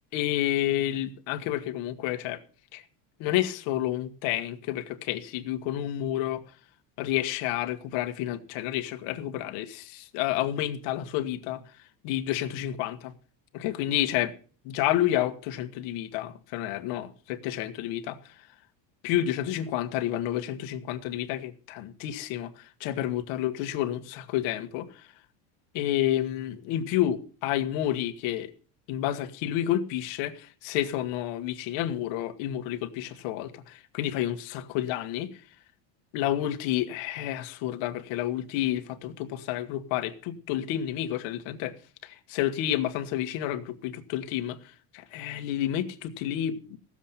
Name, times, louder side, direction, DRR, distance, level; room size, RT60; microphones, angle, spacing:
voice 1, 0.1-2.4 2.7-2.8 3.2-6.4 7.0-11.6 12.0-13.1 13.5-14.3 14.6-18.4 19.0-25.1 25.7-28.5 28.9-35.3 36.1-41.7 42.0-46.8, left 12 dB, 65° left, 1.5 m, -30 dB
16.5 x 7.5 x 5.8 m
cardioid pair, 140°, 47 cm